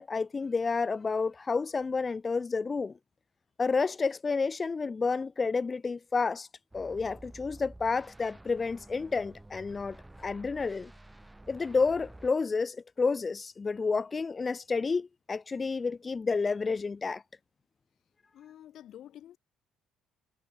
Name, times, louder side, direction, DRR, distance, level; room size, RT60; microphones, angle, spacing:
voice 1, 0.0-3.0 3.6-6.5 6.7-10.9 11.5-17.2, left 4 dB, 30° left, 0.4 m, -30 dB
sound 1, 6.7-12.3, right 1 dB, 10° right, 2.9 m, -51 dB
voice 2, 18.3-19.4, left 11 dB, 60° left, 0.9 m, -49 dB
hypercardioid pair, 50°, 0 cm